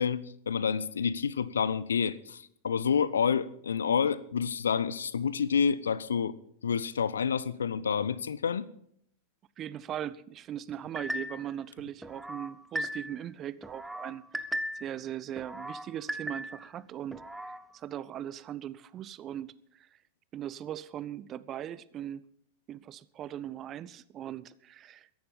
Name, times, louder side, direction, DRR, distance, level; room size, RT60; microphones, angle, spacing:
voice 1, 0.0-6.3 6.6-8.7, left 6 dB, 70° left, 0.5 m, -29 dB
voice 2, 9.6-14.5 14.7-19.9 20.3-22.3 22.7-25.1, right 11 dB, 30° right, 0.5 m, -39 dB
sound 1, 11.0-11.5 12.0-13.3 13.6-15.0 15.4-16.7 17.1-17.6, equal, 5° right, 0.8 m, -37 dB
14.5 x 11.0 x 5.4 m
figure-of-eight pair, 90°, 0 cm